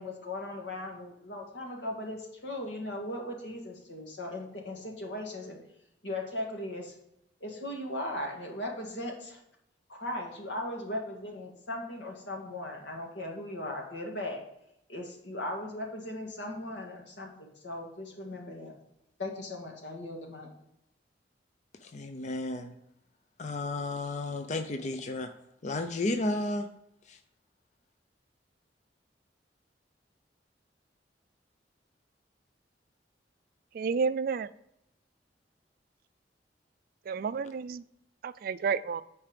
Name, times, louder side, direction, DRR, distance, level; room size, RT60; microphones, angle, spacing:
voice 1, 0.0-5.6 6.0-6.9 7.4-9.4 9.9-14.4 14.9-18.7 19.2-20.5, left 1 dB, 85° left, 0 dB, 2.0 m, -38 dB
voice 2, 21.8-22.7 23.4-25.3 25.6-26.7 27.0-27.2, left 2 dB, 40° left, 7 dB, 0.5 m, -33 dB
voice 3, 33.8-34.5 37.1-37.8 38.2-39.0, right 5 dB, 55° right, 15 dB, 0.3 m, -30 dB
9.0 x 4.7 x 5.1 m, 0.81 s
head